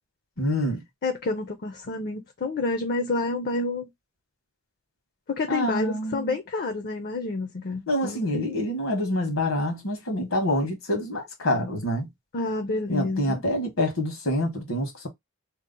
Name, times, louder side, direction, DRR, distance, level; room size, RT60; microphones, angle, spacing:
voice 1, 0.4-0.8 5.5-6.4 7.9-12.1 12.9-15.1, left 1 dB, 80° left, 1.2 m, -26 dB
voice 2, 1.0-3.9 5.3-8.6 12.3-13.4, left 3 dB, 50° left, 0.5 m, -29 dB
2.8 x 2.0 x 3.7 m
head